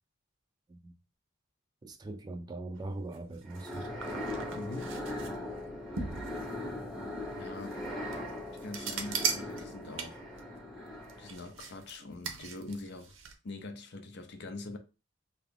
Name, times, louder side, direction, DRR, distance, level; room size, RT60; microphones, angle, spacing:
voice 1, 1.8-3.9, right 2 dB, 20° right, 0.3 m, -41 dB
sound 1, 2.7-13.3, right 6 dB, 75° right, 0.6 m, -40 dB
sound 2, 3.5-11.5, left 1 dB, ahead, 0.7 m, -40 dB
voice 2, 4.5-5.0 7.4-7.8 8.5-10.2 11.2-13.1 13.4-14.8, left 2 dB, 60° left, 0.5 m, -43 dB
2.8 x 2.3 x 3.5 m
head